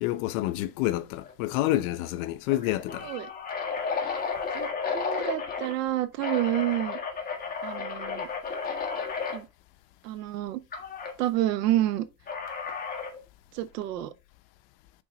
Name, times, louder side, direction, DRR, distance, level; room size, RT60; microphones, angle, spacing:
voice 1, 0.0-3.1, left 15 dB, 60° left, 0.8 m, -28 dB
sound 1, 1.2-1.5 1.8-1.9 2.5-5.7 6.2-9.4 10.7-11.1 12.3-13.2, left 5 dB, 20° left, 1.5 m, -33 dB
voice 2, 4.5-7.0 7.6-8.3 9.3-9.5 10.0-10.6 11.2-12.0 13.5-14.1, right 14 dB, 85° right, 1.0 m, -29 dB
6.1 x 3.9 x 5.1 m
supercardioid pair, 150°, 47 cm